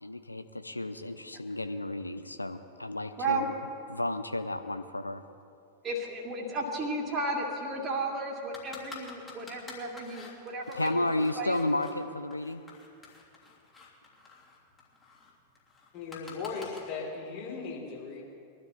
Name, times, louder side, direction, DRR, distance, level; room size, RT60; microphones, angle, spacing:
voice 1, 0.0-3.5 3.9-5.2 10.7-12.6, left 1 dB, 85° left, 10 dB, 0.7 m, -32 dB
voice 2, 3.2-3.5 5.8-11.6, right 2 dB, 25° right, -1 dB, 2.6 m, -34 dB
sound 1, 8.5-12.0 12.3-16.8, left 4 dB, 20° left, 3.2 m, -49 dB
voice 3, 15.9-18.2, left 4 dB, 40° left, -3 dB, 4.4 m, -37 dB
21.5 x 12.5 x 4.2 m, 2.4 s
figure-of-eight pair, 90°, 0 cm